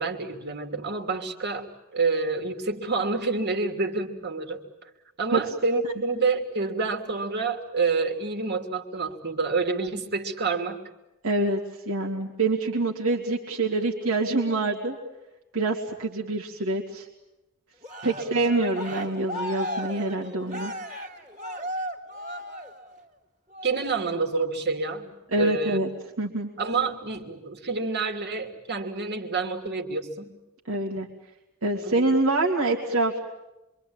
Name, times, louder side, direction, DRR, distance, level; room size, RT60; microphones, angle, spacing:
voice 1, 0.0-1.7 1.9-4.6 5.2-10.8 18.0-18.2 23.6-25.8 26.6-30.3 31.7-31.9, right 4 dB, 50° right, 4 dB, 2.9 m, -28 dB
voice 2, 11.2-11.6 11.9-15.0 15.5-17.1 18.0-20.7 25.3-25.9 26.2-26.5 30.7-31.1 31.6-33.2, right 2 dB, 75° right, -2 dB, 2.6 m, -25 dB
Cheering, 17.8-23.1 23.5-23.9, equal, 35° right, 2.9 m, -36 dB
26.5 x 24.5 x 8.8 m, 0.97 s
head